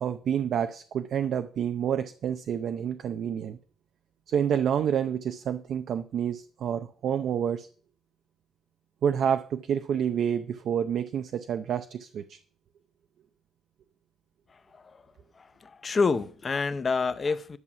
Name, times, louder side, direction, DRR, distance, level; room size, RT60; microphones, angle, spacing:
voice 1, 0.0-3.6 4.3-7.7 9.0-12.4, right 8 dB, 50° right, 0.6 m, -28 dB
voice 2, 14.5-15.1 15.3-17.6, left 4 dB, 25° left, 0.7 m, -28 dB
11.0 x 7.2 x 5.9 m
cardioid pair, 175°, 0 cm